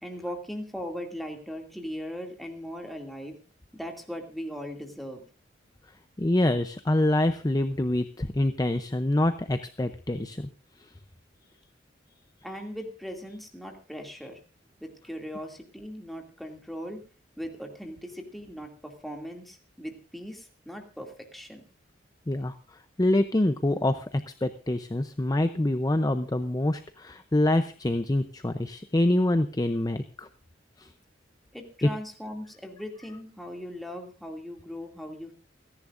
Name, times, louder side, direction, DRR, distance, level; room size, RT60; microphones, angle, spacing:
voice 1, 0.0-3.4 3.7-5.2 12.4-14.4 14.8-17.0 17.4-21.6 31.5-35.3, equal, ahead, 2 dB, 2.4 m, -39 dB
voice 2, 6.2-10.5 22.3-22.5 23.0-30.3 30.8-30.9 31.8-31.9, left 1 dB, 20° left, 10 dB, 0.6 m, -26 dB
29.0 x 10.5 x 2.5 m, 0.35 s
head